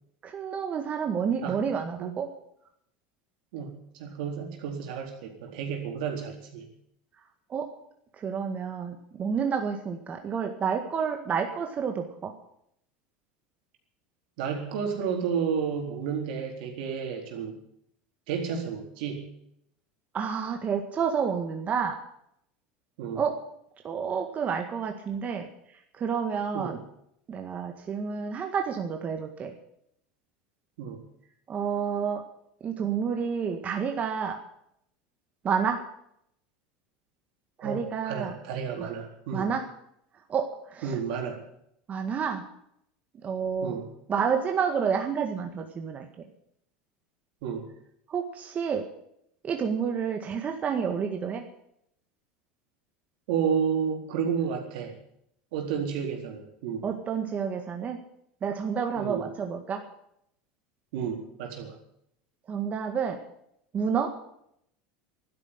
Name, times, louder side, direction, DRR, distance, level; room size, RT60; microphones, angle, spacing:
voice 1, 0.2-2.3 7.5-7.7 8.2-12.3 20.1-22.0 23.2-23.4 23.8-25.5 26.0-26.8 27.3-29.5 31.5-32.2 32.6-34.4 35.4-35.8 37.6-38.3 38.8-38.9 39.3-39.6 40.3-40.9 41.9-42.4 43.2-43.7 44.1-46.1 48.1-48.8 49.4-51.4 56.8-58.0 58.4-59.8 62.5-63.2 63.7-64.1, right 6 dB, 30° right, 4 dB, 1.8 m, -29 dB
voice 2, 3.5-6.7 14.4-17.6 18.3-19.3 23.0-23.2 26.5-26.8 30.8-31.0 37.6-39.5 40.8-41.4 43.6-43.9 47.4-47.7 53.3-54.9 55.5-56.9 59.0-59.3 60.9-61.8, right 7 dB, 75° right, 2 dB, 4.1 m, -31 dB
12.5 x 10.0 x 9.8 m, 0.74 s
supercardioid pair, 115°, 5 cm